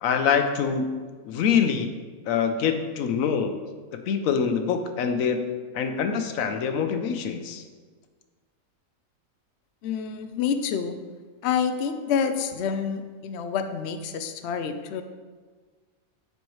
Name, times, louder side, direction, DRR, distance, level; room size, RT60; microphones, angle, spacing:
voice 1, 0.0-0.9 1.2-1.9 2.3-3.6 4.1-5.4 5.7-7.6, left 6 dB, 80° left, 7 dB, 1.0 m, -24 dB
voice 2, 9.8-11.0 11.4-15.0, left 7 dB, 65° left, 8 dB, 0.7 m, -28 dB
10.5 x 4.6 x 3.1 m, 1.5 s
omnidirectional pair, 1.4 m